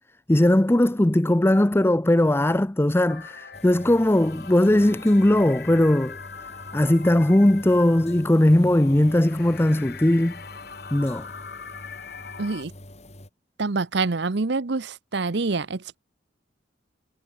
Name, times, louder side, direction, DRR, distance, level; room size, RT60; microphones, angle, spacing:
voice 1, 0.3-6.2 6.7-10.4 10.9-11.3, left 1 dB, 10° left, 0.5 m, -19 dB
sound 1, 3.1-12.6, left 6 dB, 55° left, 3.7 m, -42 dB
sound 2, 3.5-13.3, left 1 dB, 35° left, 3.8 m, -45 dB
voice 2, 12.4-12.7 13.6-16.0, right 3 dB, 60° right, 0.8 m, -26 dB
head